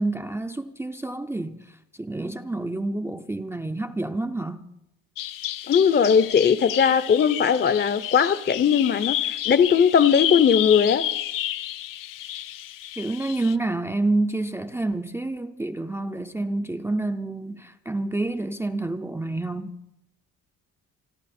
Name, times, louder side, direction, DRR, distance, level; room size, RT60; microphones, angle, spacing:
voice 1, 0.0-4.6 12.9-19.8, right 2 dB, 10° right, 6 dB, 0.5 m, -28 dB
Bird vocalization bird call bird song, 5.2-13.6, left 13 dB, 80° left, 0.8 m, -31 dB
voice 2, 5.7-11.0, left 7 dB, 30° left, 15 dB, 0.7 m, -19 dB
28.0 x 10.5 x 4.3 m, 0.86 s
cardioid pair, 135°, 32 cm